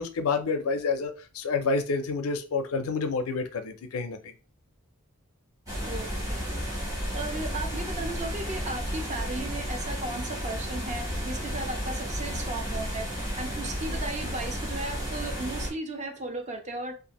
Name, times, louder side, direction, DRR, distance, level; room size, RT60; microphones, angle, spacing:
voice 1, 0.0-4.3, left 4 dB, 70° left, 7 dB, 0.4 m, -29 dB
sound 1, 5.7-15.7, equal, 15° right, 1.0 m, -32 dB
voice 2, 5.8-6.5 7.1-13.0 13.4-17.0, right 2 dB, 35° right, 4 dB, 0.5 m, -36 dB
2.6 x 2.4 x 2.9 m, 0.35 s
head